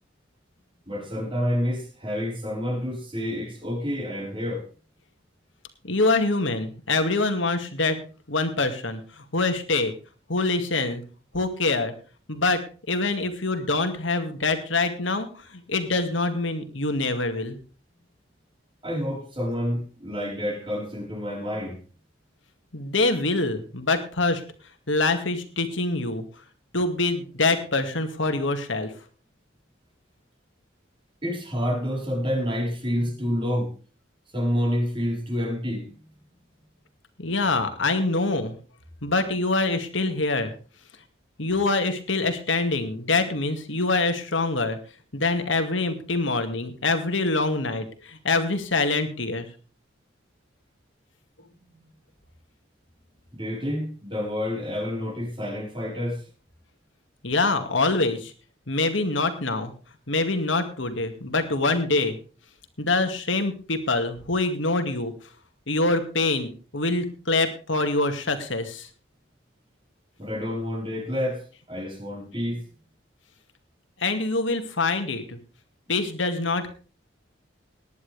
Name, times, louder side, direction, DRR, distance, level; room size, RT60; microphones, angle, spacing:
voice 1, 0.9-4.6 18.8-21.8 31.2-33.7 34.3-35.9 53.3-56.2 70.2-71.4 71.7-72.7, equal, 25° right, 1 dB, 4.6 m, -28 dB
voice 2, 5.8-8.0 8.3-9.9 10.3-11.0 11.3-11.9 12.3-12.6 12.9-17.6 22.7-24.4 24.9-26.2 26.7-28.9 37.2-38.6 39.0-40.5 41.4-44.8 45.1-49.5 57.2-58.3 58.7-59.7 60.1-62.2 62.8-65.1 65.7-68.9 74.0-75.4 75.9-76.7, left 3 dB, 75° left, 7 dB, 2.3 m, -25 dB
18.5 x 11.0 x 3.5 m, 0.37 s
head